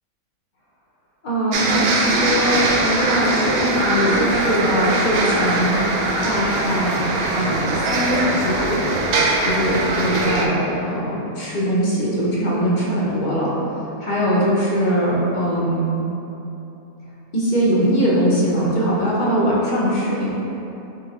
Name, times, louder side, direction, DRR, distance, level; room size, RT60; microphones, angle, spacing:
voice 1, 1.2-5.8 6.2-9.0 9.4-13.5 14.0-15.9 17.3-20.3, equal, 40° left, -6 dB, 0.7 m, -21 dB
sound 1, 1.5-10.5, right 2 dB, 70° right, 0.5 m, -21 dB
3.9 x 3.2 x 4.1 m, 3.0 s
omnidirectional pair, 1.5 m